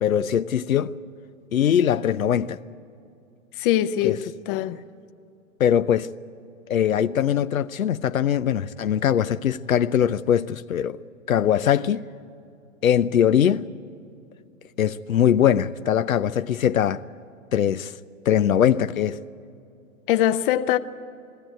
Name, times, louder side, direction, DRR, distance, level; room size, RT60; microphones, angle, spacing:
voice 1, 0.0-0.9 1.5-2.6 4.0-4.2 5.6-6.1 6.7-11.0 11.3-12.1 12.8-13.7 14.8-17.0 17.5-17.9 18.3-19.2, left 9 dB, 90° left, 0.7 m, -21 dB
voice 2, 3.6-4.8 20.1-20.8, left 12 dB, 40° left, 0.8 m, -22 dB
20.5 x 16.5 x 9.0 m
hypercardioid pair, 120°, 40 cm